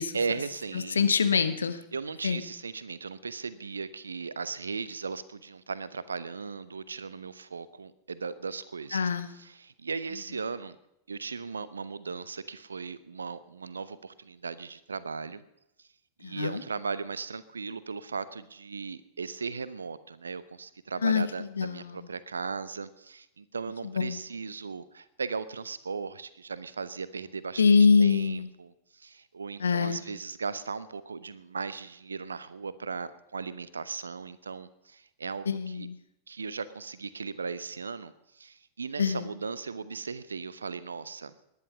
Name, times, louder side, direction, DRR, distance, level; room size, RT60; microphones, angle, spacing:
voice 1, 0.1-1.0 1.9-10.8 11.1-15.4 16.2-27.6 28.0-35.9 36.3-41.3, right 5 dB, 75° right, 16 dB, 0.8 m, -37 dB
voice 2, 1.0-1.8 2.2-2.4 8.9-9.3 16.2-16.6 21.0-21.2 21.6-21.9 24.0-24.2 27.6-28.5 29.6-30.0 35.5-35.9 39.0-39.3, left 5 dB, 70° left, 11 dB, 1.1 m, -24 dB
19.5 x 10.5 x 5.5 m, 0.79 s
figure-of-eight pair, 90°, 0 cm